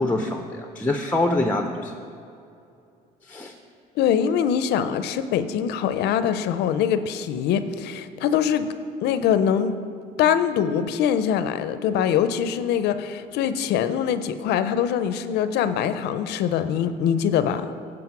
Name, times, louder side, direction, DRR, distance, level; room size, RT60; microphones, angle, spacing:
voice 1, 0.0-1.9 3.2-3.5, left 2 dB, 10° left, 4 dB, 0.5 m, -25 dB
voice 2, 4.0-8.7 9.0-9.7 10.2-17.7, left 8 dB, 80° left, 11 dB, 0.5 m, -23 dB
9.5 x 5.0 x 5.9 m, 2.6 s
cardioid pair, 110°, 17 cm